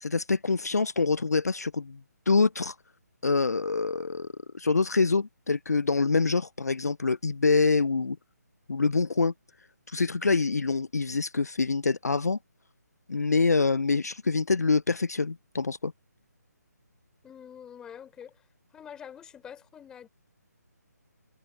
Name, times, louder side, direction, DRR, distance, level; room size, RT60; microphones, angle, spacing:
voice 1, 0.0-2.0 2.3-2.8 3.2-4.3 4.5-8.2 8.7-9.3 9.9-12.4 13.1-15.9, left 4 dB, 65° left, 0.5 m, -25 dB
voice 2, 17.2-18.4 18.7-20.1, left 8 dB, 5° left, 3.4 m, -46 dB
figure-of-eight pair, 145°, 9 cm